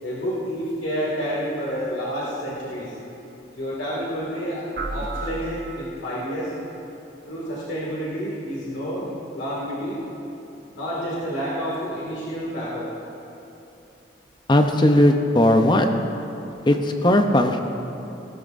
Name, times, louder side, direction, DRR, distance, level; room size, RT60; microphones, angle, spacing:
voice 1, 0.0-2.9 3.5-6.5 7.3-9.1 9.3-10.0 10.7-12.9, equal, 70° left, -6 dB, 2.1 m, -29 dB
sound 1, 4.8-6.3, right 2 dB, 50° right, 1.0 m, -33 dB
voice 2, 14.5-15.9 16.7-17.6, left 1 dB, 25° left, 5 dB, 0.6 m, -17 dB
18.0 x 13.5 x 2.6 m, 3.0 s
head